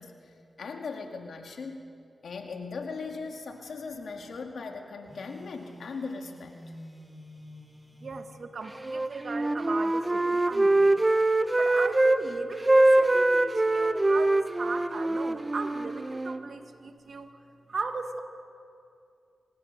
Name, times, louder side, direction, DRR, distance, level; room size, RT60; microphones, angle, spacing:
voice 1, 0.0-1.9 2.2-6.6, left 4 dB, 80° left, 3 dB, 2.2 m, -39 dB
Telephone, 5.1-8.2, left 1 dB, ahead, 4.7 m, -48 dB
voice 2, 8.0-11.0 11.6-17.3 17.7-18.2, right 3 dB, 65° right, 6 dB, 2.0 m, -37 dB
Wind instrument woodwind instrument, 8.8-12.2 12.5-16.4, right 2 dB, 30° right, 1.0 m, -23 dB
25.5 x 18.5 x 6.8 m, 2.5 s
cardioid pair, 45°, 0 cm